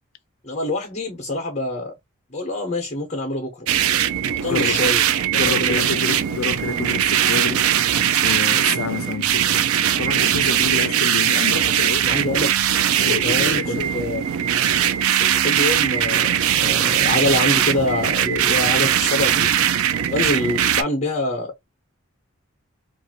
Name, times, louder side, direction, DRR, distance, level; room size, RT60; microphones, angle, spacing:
voice 1, 0.4-1.9 2.3-3.7 4.4-5.0 5.5-5.8 12.0-12.5 13.0-14.2 15.2-19.5 20.1-21.7, left 2 dB, 30° left, 0.9 m, -25 dB
sound 1, 3.7-20.8, right 10 dB, 80° right, 0.4 m, -20 dB
voice 2, 4.4-4.8 5.3-7.7 8.2-9.6 10.0-12.2 13.0-14.0, left 6 dB, 70° left, 0.4 m, -28 dB
2.7 x 2.5 x 2.7 m
head